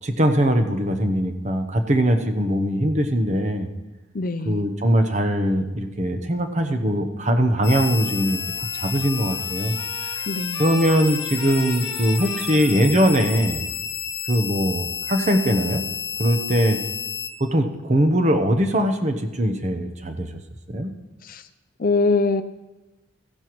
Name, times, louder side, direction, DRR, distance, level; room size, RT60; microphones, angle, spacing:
voice 1, 0.0-3.7 4.5-10.1 10.6-13.6 14.3-15.9 16.2-16.8 17.4-20.4 20.7-20.9, equal, 40° right, 6 dB, 0.9 m, -21 dB
voice 2, 4.1-4.6 10.3-10.6 21.2-21.5 21.8-22.4, left 3 dB, 50° left, 10 dB, 0.5 m, -22 dB
sound 1, 7.6-17.3, left 7 dB, 70° left, 1.1 m, -30 dB
Trumpet, 7.9-13.5, left 1 dB, 5° left, 3.0 m, -41 dB
15.0 x 11.0 x 3.1 m, 1.1 s
head